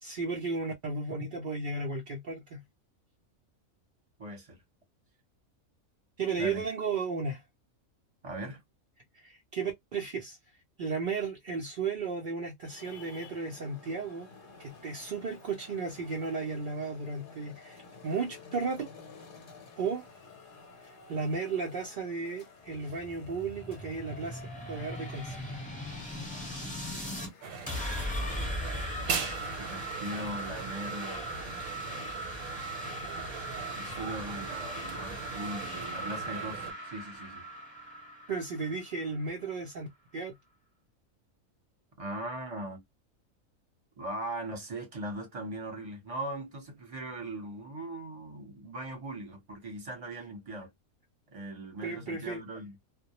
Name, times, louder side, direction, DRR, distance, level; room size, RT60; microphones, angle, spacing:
voice 1, 0.0-2.6 6.2-7.4 9.1-10.4 10.8-14.3 14.6-18.9 19.8-20.1 21.1-24.4 24.7-25.5 38.3-39.9 40.1-40.3 51.8-52.4, right 4 dB, 60° right, 0.5 m, -34 dB
voice 2, 4.2-4.6 6.4-6.7 8.2-8.6 28.0-28.2 29.6-31.5 33.7-37.5 42.0-42.8 44.0-50.7 51.3-52.8, right 1 dB, 30° right, 0.8 m, -40 dB
Traffic noise roadway noise, 12.6-31.3, left 4 dB, 50° left, 0.7 m, -53 dB
sound 1, 22.6-27.3 27.7-39.2, equal, 5° left, 0.7 m, -39 dB
sound 2, 27.4-36.7, right 5 dB, 80° right, 1.1 m, -40 dB
2.2 x 2.1 x 2.8 m
omnidirectional pair, 1.4 m